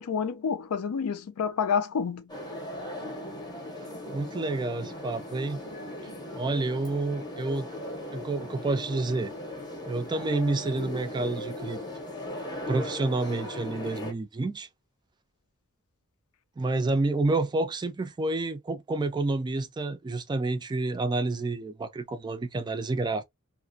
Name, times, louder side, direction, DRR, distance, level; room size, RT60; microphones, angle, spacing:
voice 1, 0.0-2.2, left 6 dB, 90° left, 0.4 m, -28 dB
sound 1, 2.3-14.1, left 1 dB, 20° left, 0.7 m, -38 dB
voice 2, 4.1-5.6 6.3-7.7 8.1-9.3 9.9-11.8 12.7-14.7 16.6-23.2, right 2 dB, 20° right, 0.3 m, -29 dB
2.4 x 2.1 x 2.5 m
head